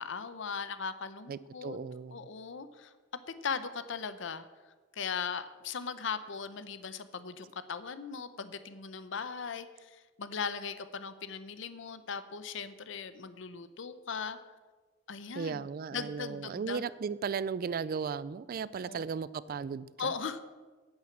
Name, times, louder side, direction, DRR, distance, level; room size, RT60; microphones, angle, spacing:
voice 1, 0.0-1.8 2.1-2.9 3.3-4.5 4.9-14.4 15.1-15.6 15.9-16.8 18.8-19.0 20.0-20.4, left 6 dB, 70° left, 12 dB, 0.7 m, -38 dB
voice 2, 1.3-2.3 15.3-20.1, right 6 dB, 50° right, 18 dB, 0.3 m, -36 dB
9.1 x 8.8 x 7.3 m, 1.3 s
head